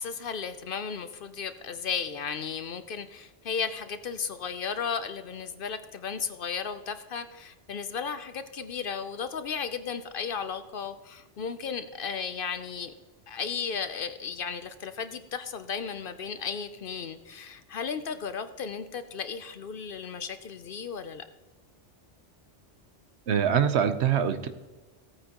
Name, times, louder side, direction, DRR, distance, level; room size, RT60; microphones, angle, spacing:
voice 1, 0.0-12.9 13.3-21.2, left 6 dB, 60° left, 11 dB, 0.7 m, -35 dB
voice 2, 23.3-24.5, right 8 dB, 70° right, 10 dB, 1.0 m, -24 dB
16.0 x 8.8 x 2.9 m, 1.2 s
omnidirectional pair, 1.2 m